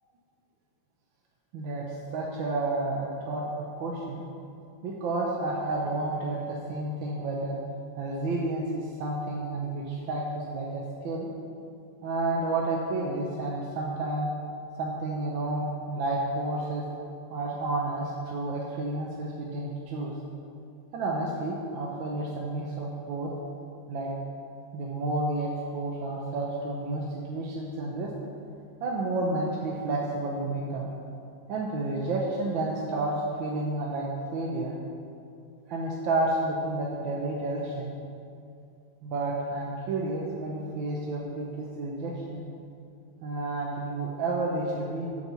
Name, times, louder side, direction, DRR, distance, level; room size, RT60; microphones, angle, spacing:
voice 1, 1.5-4.2 4.8-7.6 8.0-11.3 12.0-14.3 14.8-16.8 17.3-20.1 20.9-23.3 23.9-24.1 24.7-28.1 28.8-30.9 31.5-34.7 35.7-37.9 39.0-42.4 43.2-45.1, right 2 dB, 75° right, -2 dB, 1.5 m, -31 dB
8.1 x 4.5 x 6.8 m, 2.5 s
omnidirectional pair, 2.2 m